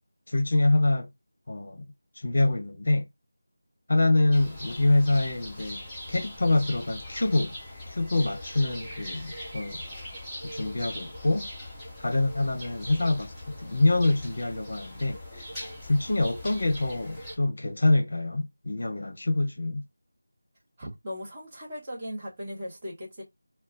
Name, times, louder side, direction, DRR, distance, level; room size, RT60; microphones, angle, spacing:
voice 1, 0.3-1.1 1.5-1.8 2.2-3.0 3.9-5.8 6.1-7.5 7.9-9.8 10.4-11.5 12.0-15.5 15.8-19.8, left 2 dB, 55° left, 0.7 m, -25 dB
sound 1, 4.3-17.4, left 1 dB, ahead, 0.8 m, -41 dB
voice 2, 20.8-23.2, equal, 20° right, 1.1 m, -38 dB
2.3 x 2.2 x 3.9 m
figure-of-eight pair, 165°, 0 cm